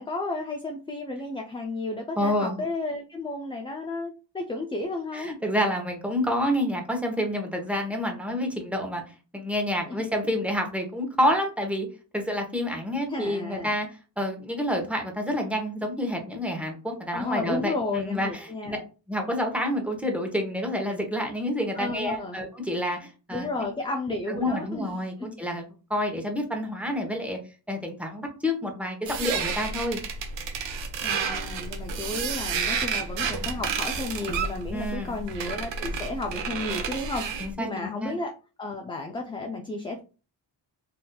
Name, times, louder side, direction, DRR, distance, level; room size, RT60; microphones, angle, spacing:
voice 1, 0.0-5.3 9.8-10.1 13.1-13.7 17.1-18.9 21.7-22.4 23.3-25.3 31.0-40.0, left 2 dB, 15° left, 2 dB, 0.3 m, -33 dB
voice 2, 2.2-2.6 5.1-9.0 9.3-11.9 12.1-13.9 14.2-18.8 19.1-23.5 24.3-25.6 25.9-27.4 27.7-30.0 34.7-35.1 37.4-38.1, equal, 5° right, 2 dB, 0.9 m, -28 dB
sound 1, 29.1-37.5, right 5 dB, 75° right, 0.7 m, -31 dB
3.9 x 2.6 x 2.2 m, 0.34 s
cardioid pair, 95°, 45 cm